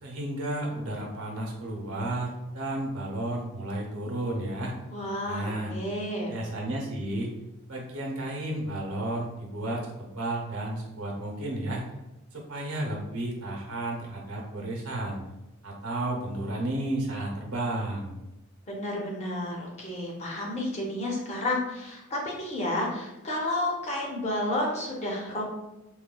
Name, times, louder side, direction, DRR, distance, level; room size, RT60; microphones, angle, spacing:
voice 1, 0.0-4.7 5.3-5.7 6.3-7.3 7.7-11.8 12.3-15.2 15.6-18.1, right 1 dB, 85° right, -1 dB, 0.7 m, -32 dB
voice 2, 4.9-6.3 18.7-25.4, left 1 dB, 30° left, -2 dB, 0.6 m, -31 dB
3.1 x 2.2 x 2.2 m, 0.98 s
head